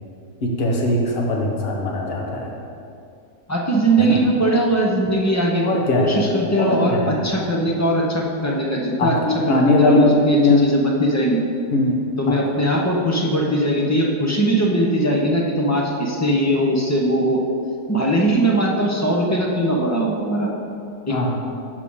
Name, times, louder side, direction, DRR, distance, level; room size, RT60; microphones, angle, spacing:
voice 1, 0.4-2.5 4.0-4.2 5.6-6.3 6.6-7.2 9.0-10.6 11.7-12.4 21.1-21.4, left 2 dB, 45° left, 0 dB, 1.1 m, -20 dB
voice 2, 3.5-5.7 6.0-9.1 9.5-11.4 12.2-17.4 17.9-20.5 21.1-21.2, right 1 dB, 20° left, -2 dB, 0.5 m, -20 dB
7.4 x 4.9 x 5.5 m, 2.5 s
omnidirectional pair, 1.7 m